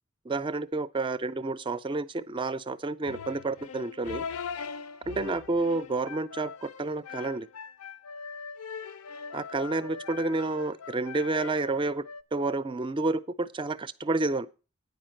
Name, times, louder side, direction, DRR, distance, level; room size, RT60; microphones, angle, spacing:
voice 1, 0.3-4.3 5.1-7.5 9.3-12.0 12.3-14.5, right 3 dB, 20° right, 0.4 m, -30 dB
sound 1, 3.0-12.2, left 6 dB, 80° left, 0.5 m, -41 dB
9.3 x 5.1 x 7.6 m
head